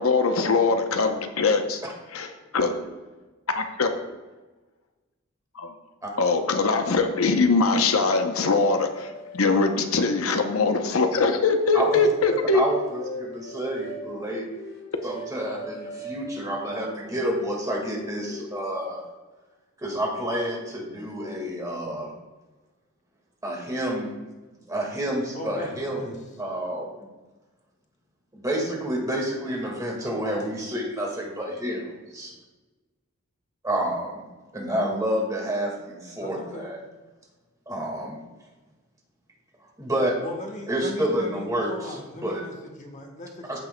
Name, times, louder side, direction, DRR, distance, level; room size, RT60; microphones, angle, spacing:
voice 1, 0.0-1.8 2.1-2.7 3.5-3.9 5.6-5.7 6.2-12.6, left 3 dB, 85° left, 6 dB, 0.7 m, -22 dB
sound 1, 8.5-10.9 11.6-14.0 14.5-16.2 16.6-18.7, left 1 dB, 65° left, 2.5 m, -40 dB
voice 2, 12.5-14.5 15.0-19.1 19.8-22.1 23.4-24.1 24.7-26.9 28.3-32.3 33.6-34.2 34.5-36.8 37.7-38.2 39.8-40.1 40.7-42.0 42.2-42.4 43.5-43.6, right 1 dB, 15° right, -1 dB, 1.8 m, -29 dB
voice 3, 25.3-26.2 36.2-36.7 40.2-43.6, left 1 dB, 35° left, 2 dB, 1.1 m, -38 dB
14.0 x 6.1 x 2.2 m, 1.2 s
head